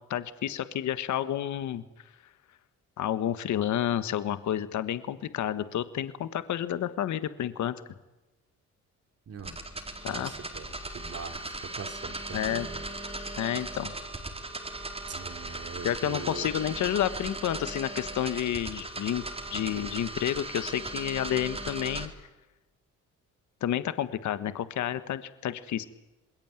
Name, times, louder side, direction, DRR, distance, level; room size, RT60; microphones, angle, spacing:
voice 1, 0.1-1.8 3.0-7.7 10.0-10.3 12.3-12.7 13.4-13.9 15.8-19.2 19.5-22.1 23.6-25.8, left 11 dB, 70° left, 13 dB, 1.5 m, -30 dB
sound 1, 9.4-22.1, right 2 dB, 20° right, 4.4 m, -38 dB
voice 2, 10.1-12.9 15.1-16.5, right 5 dB, 50° right, 5 dB, 3.2 m, -42 dB
27.0 x 21.5 x 9.1 m, 1.1 s
cardioid pair, 90°, 30 cm